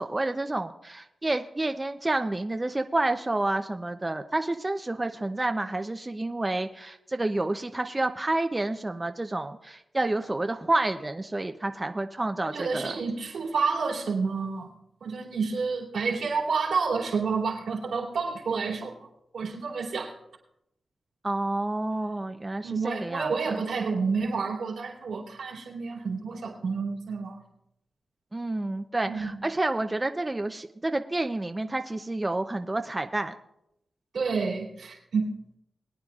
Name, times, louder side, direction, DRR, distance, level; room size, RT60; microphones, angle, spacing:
voice 1, 0.0-12.9 21.2-23.6 28.3-33.3, right 2 dB, 25° right, 6 dB, 0.6 m, -29 dB
voice 2, 12.4-14.7 15.0-19.0 19.3-20.1 22.6-27.4 29.0-29.4 34.1-35.3, right 4 dB, 85° right, -3 dB, 2.8 m, -29 dB
21.5 x 9.4 x 2.4 m, 0.82 s
cardioid pair, 65°, 0 cm